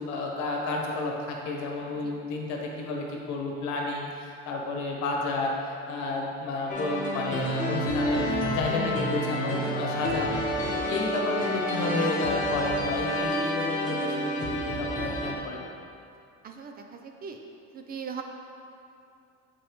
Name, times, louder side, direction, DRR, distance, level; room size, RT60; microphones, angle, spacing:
voice 1, 0.0-15.6, left 3 dB, 75° left, 0 dB, 1.1 m, -31 dB
sound 1, 6.7-15.3, equal, 25° left, 0.9 m, -29 dB
voice 2, 16.4-17.4 17.7-18.2, right 6 dB, 30° right, 4 dB, 0.4 m, -39 dB
7.1 x 5.2 x 3.0 m, 2.6 s
cardioid pair, 150°, 29 cm